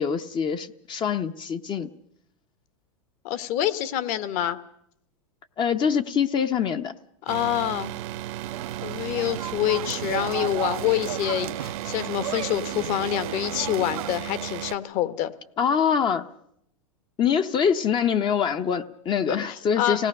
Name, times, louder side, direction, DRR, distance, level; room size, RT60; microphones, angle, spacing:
voice 1, 0.0-1.9 5.6-6.9 15.6-16.3 17.2-20.1, left 7 dB, 25° left, 8 dB, 0.8 m, -24 dB
voice 2, 3.2-4.6 7.3-7.9 8.8-15.3 19.3-20.0, left 12 dB, 45° left, 14 dB, 1.3 m, -26 dB
sound 1, 7.3-14.8, right 14 dB, 55° right, 0.9 m, -35 dB
sound 2, 8.4-14.2, right 11 dB, 90° right, 0.7 m, -35 dB
25.0 x 17.5 x 6.6 m, 0.74 s
hypercardioid pair, 130°, 18 cm